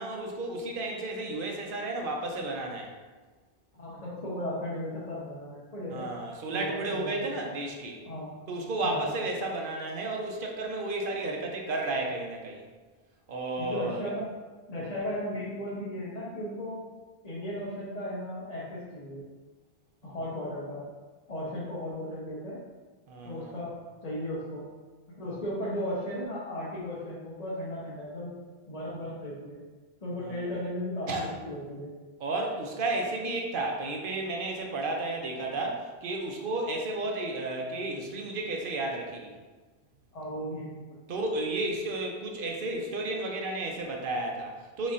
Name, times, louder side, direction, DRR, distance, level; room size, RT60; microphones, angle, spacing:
voice 1, 0.0-2.9 5.9-8.0 8.5-12.6 13.3-14.1 20.0-20.2 23.1-23.5 30.2-30.5 31.1-31.3 32.2-39.3 41.1-44.9, right 2 dB, 60° right, 1 dB, 0.8 m, -32 dB
voice 2, 3.7-6.0 6.5-7.3 8.1-8.3 8.8-9.2 13.6-14.2 14.7-16.8 17.2-19.2 20.0-20.8 21.3-22.6 23.2-23.7 24.0-24.7 25.1-28.3 28.7-29.6 30.0-31.9 40.1-40.8, left 1 dB, 40° left, -8 dB, 0.9 m, -36 dB
4.1 x 4.1 x 2.5 m, 1.3 s
omnidirectional pair, 1.1 m